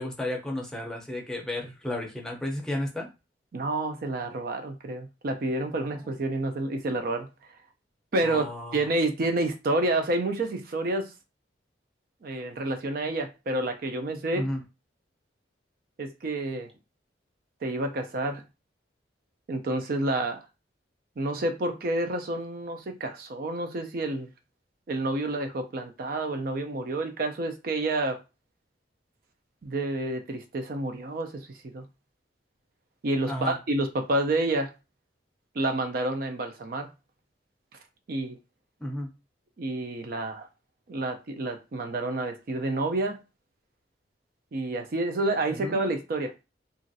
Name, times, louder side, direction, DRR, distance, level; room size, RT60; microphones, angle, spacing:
voice 1, 0.0-3.1 5.9-6.0 8.2-8.9 14.3-14.6 33.3-33.6 38.8-39.1 45.5-45.8, left 1 dB, 5° left, 0.5 m, -33 dB
voice 2, 3.5-7.3 8.1-8.4 8.7-11.1 12.2-14.5 16.0-16.7 17.6-18.4 19.5-20.4 21.2-24.3 24.9-28.2 29.6-31.8 33.0-34.7 35.6-36.9 38.1-38.4 39.6-40.5 40.9-43.2 44.5-46.3, right 2 dB, 50° right, 0.4 m, -29 dB
2.9 x 2.5 x 2.6 m
head